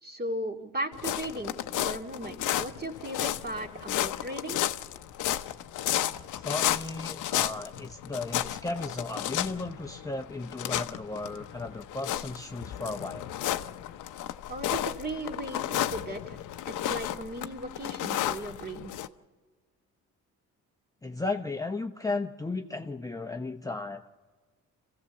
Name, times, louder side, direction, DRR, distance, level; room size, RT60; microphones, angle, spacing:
voice 1, 0.0-4.6 14.5-16.4 16.7-18.9, right 1 dB, 30° right, 3 dB, 2.3 m, -37 dB
sound 1, 0.9-19.1, left 12 dB, 85° left, 0.8 m, -33 dB
voice 2, 6.3-13.3 21.0-24.1, left 3 dB, 10° left, 4 dB, 0.8 m, -35 dB
27.5 x 15.5 x 7.0 m, 1.4 s
cardioid pair, 90°, 30 cm